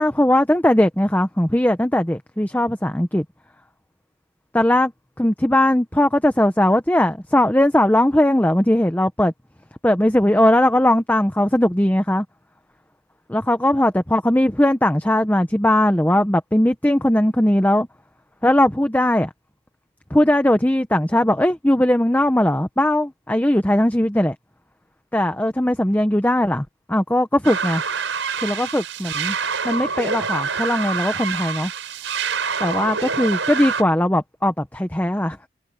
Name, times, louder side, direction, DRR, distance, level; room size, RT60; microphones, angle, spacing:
voice 1, 0.0-3.2 4.5-4.9 5.2-9.3 9.8-12.2 13.3-17.9 18.4-19.3 20.1-24.3 25.1-27.8 28.4-29.3 29.6-31.7 32.6-35.4, left 1 dB, 10° left, 0.8 m, -19 dB
sound 1, 27.4-33.8, right 5 dB, 80° right, 4.9 m, -26 dB
head